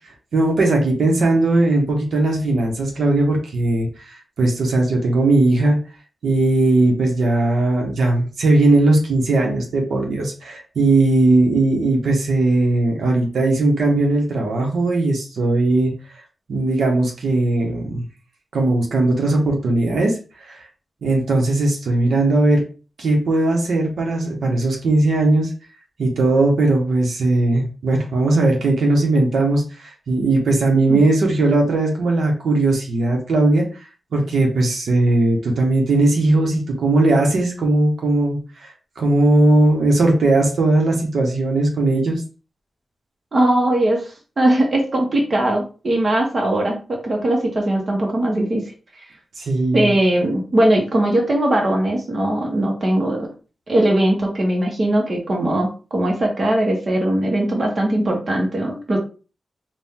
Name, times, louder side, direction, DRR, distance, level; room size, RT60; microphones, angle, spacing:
voice 1, 0.3-5.8 6.2-16.2 16.5-18.0 18.5-20.6 21.0-22.6 23.0-25.5 26.0-33.7 34.1-42.2 49.4-49.9, right 2 dB, 90° right, 0 dB, 1.2 m, -18 dB
voice 2, 43.3-48.7 49.7-53.3 53.7-59.0, right 1 dB, 35° right, 0 dB, 1.1 m, -20 dB
4.5 x 2.5 x 3.6 m, 0.34 s
wide cardioid pair, 160°, 0 cm